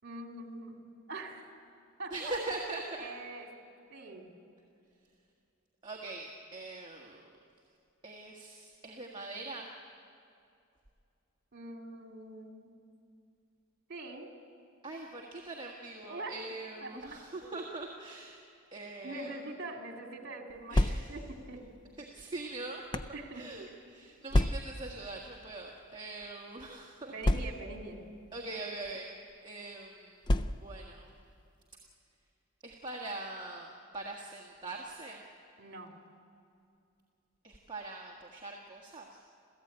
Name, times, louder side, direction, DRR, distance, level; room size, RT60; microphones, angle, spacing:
voice 1, 0.0-0.8 1.1-1.5 2.0-2.4 3.0-3.5 3.9-4.3 11.5-12.7 13.9-14.3 16.0-16.3 16.8-16.9 19.0-21.7 23.1-23.4 27.1-28.0 35.6-36.0, right 2 dB, 50° right, 2 dB, 2.7 m, -43 dB
voice 2, 2.1-3.0 5.8-7.3 8.0-9.7 14.8-18.4 18.7-19.3 20.7-21.1 22.0-22.8 23.3-27.4 28.3-29.1 29.4-30.2 30.6-31.1 32.6-35.2 37.4-39.2, right 2 dB, 20° right, -1 dB, 1.6 m, -42 dB
sound 1, 20.5-21.4 22.2-23.2 24.3-24.9 25.8-26.0 26.2-26.3 27.2-27.9 28.8-29.0 30.2-30.9, left 1 dB, 20° left, 0.5 m, -29 dB
28.0 x 15.5 x 8.8 m, 2.5 s
head